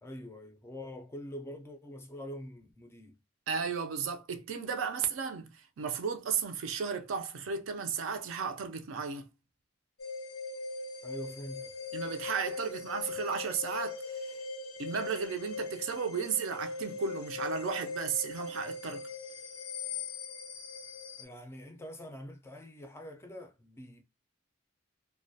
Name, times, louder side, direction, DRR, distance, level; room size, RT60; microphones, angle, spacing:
voice 1, 0.0-3.2 11.0-11.7 21.2-24.0, equal, 10° left, 0.3 m, -45 dB
voice 2, 3.5-9.3 11.9-14.3 14.8-19.1, right 6 dB, 70° right, 0.4 m, -34 dB
sound 1, 10.0-21.2, left 4 dB, 85° left, 0.5 m, -40 dB
2.2 x 2.1 x 2.6 m
head